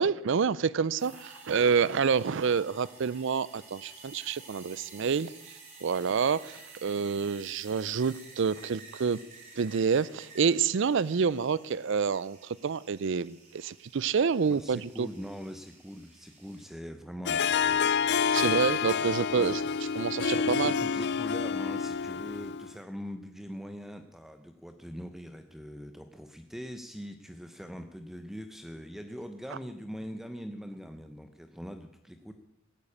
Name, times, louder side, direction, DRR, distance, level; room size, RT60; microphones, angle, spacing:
voice 1, 0.0-9.2 9.6-15.1 18.3-19.6 20.0-20.7, right 6 dB, 60° right, 20 dB, 0.5 m, -28 dB
sound 1, 0.9-16.7, right 3 dB, 40° right, 5.2 m, -52 dB
voice 2, 14.5-17.8 18.2-18.6 18.9-19.7 20.6-32.3, equal, ahead, 7 dB, 0.8 m, -42 dB
Harp, 17.3-22.7, left 6 dB, 55° left, 0.5 m, -28 dB
17.0 x 9.0 x 8.6 m, 0.91 s
head